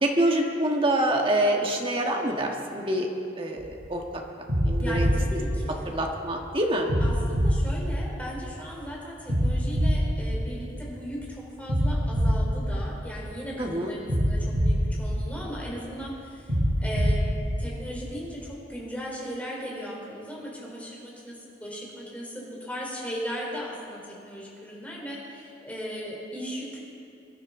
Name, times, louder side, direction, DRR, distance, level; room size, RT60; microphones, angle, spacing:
voice 1, 0.0-3.1 3.4-4.0 4.6-5.1 5.9-6.9 13.6-13.9, right 1 dB, 30° right, 1 dB, 1.6 m, -26 dB
sound 1, 3.6-3.9 4.5-6.3 6.9-8.7 9.3-11.1 11.7-13.5 14.1-15.9 16.5-18.3, equal, 80° right, 2.6 m, -25 dB
voice 2, 4.8-5.9 7.0-16.5 16.8-17.3 17.6-26.8, equal, 10° left, -4 dB, 3.6 m, -37 dB
23.0 x 11.5 x 3.8 m, 2.6 s
head